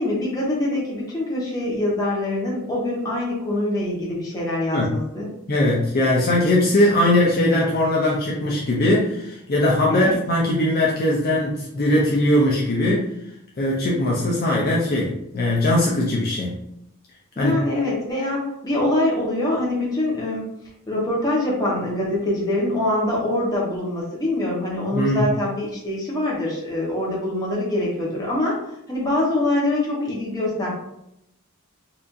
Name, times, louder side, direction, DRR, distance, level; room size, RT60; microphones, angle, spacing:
voice 1, 0.0-5.3 9.9-10.1 17.3-20.5 20.9-28.5 28.9-30.7, left 1 dB, 15° left, -5 dB, 1.1 m, -24 dB
voice 2, 5.5-13.1 13.6-16.6 17.4-17.6 24.9-25.3, left 1 dB, 45° left, -4 dB, 0.6 m, -20 dB
4.2 x 2.6 x 2.6 m, 0.81 s
head